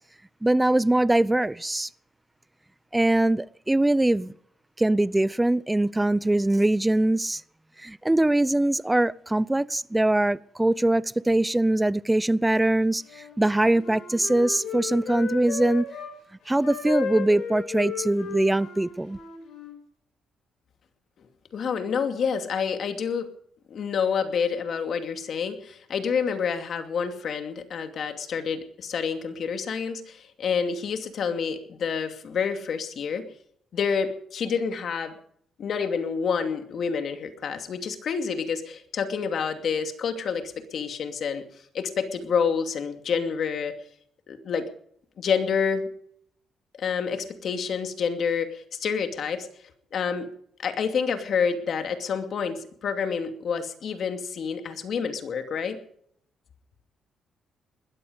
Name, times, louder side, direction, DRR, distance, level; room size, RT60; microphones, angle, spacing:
voice 1, 0.4-1.9 2.9-4.3 4.8-7.4 7.8-15.8 16.5-19.2, right 1 dB, 10° right, 0.6 m, -22 dB
Wind instrument woodwind instrument, 13.0-16.1 16.6-19.8, left 6 dB, 75° left, 6.5 m, -35 dB
voice 2, 21.5-23.3 23.7-33.3 33.7-35.1 35.6-41.4 41.7-43.7 44.3-44.7 45.2-45.9 46.8-49.5 49.9-50.3 50.6-55.8, left 6 dB, 60° left, 2.5 m, -28 dB
20.5 x 13.5 x 5.2 m
cardioid pair, 95°, 0 cm